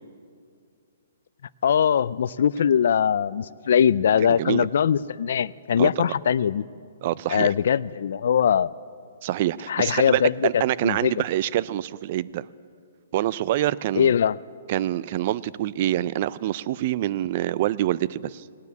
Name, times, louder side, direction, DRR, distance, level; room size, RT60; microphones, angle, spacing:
voice 1, 1.6-6.6 7.3-8.7 9.7-11.1 14.0-14.4, left 8 dB, 60° left, 20 dB, 0.4 m, -21 dB
voice 2, 4.2-4.7 5.8-6.1 7.0-7.5 9.2-12.5 13.1-14.2 14.7-18.4, right 13 dB, 35° right, 20 dB, 0.3 m, -26 dB
18.0 x 9.6 x 8.2 m, 2.2 s
hypercardioid pair, 165°, 0 cm